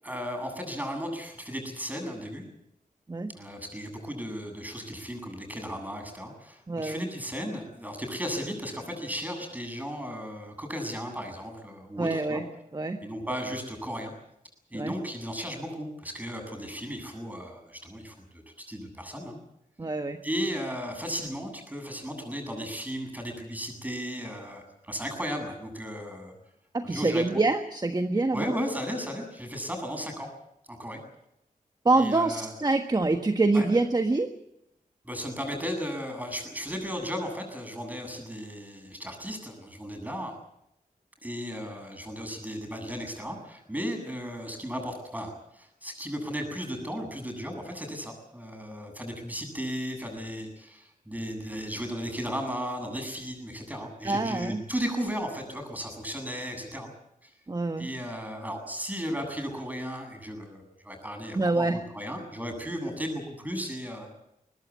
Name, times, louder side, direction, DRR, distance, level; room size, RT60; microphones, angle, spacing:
voice 1, 0.0-2.4 3.3-12.4 13.0-14.1 14.7-19.4 20.2-26.3 26.8-27.4 28.3-30.3 30.7-31.0 31.9-32.5 33.5-33.7 35.0-40.3 41.2-56.9 57.2-57.3 57.8-64.1, equal, 10° right, 4 dB, 8.0 m, -35 dB
voice 2, 6.7-7.1 12.0-12.5 12.7-13.0 14.7-14.9 19.8-20.2 26.7-28.5 31.8-34.3 54.0-54.6 57.5-57.9 61.3-61.8, right 3 dB, 30° right, 6 dB, 1.5 m, -25 dB
23.0 x 20.0 x 8.5 m, 0.80 s
wide cardioid pair, 95°, 15 cm